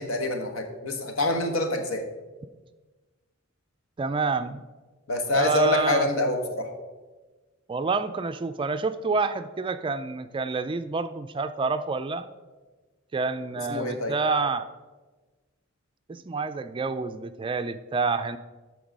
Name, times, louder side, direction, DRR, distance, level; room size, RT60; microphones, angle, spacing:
voice 1, 0.0-2.0 5.1-6.7 13.6-14.2, left 1 dB, 80° left, 5 dB, 1.3 m, -26 dB
voice 2, 4.0-4.6 5.3-6.1 7.7-12.3 13.1-14.7 16.1-18.4, right 4 dB, 25° right, 11 dB, 0.3 m, -28 dB
13.0 x 4.7 x 5.2 m, 1.3 s
head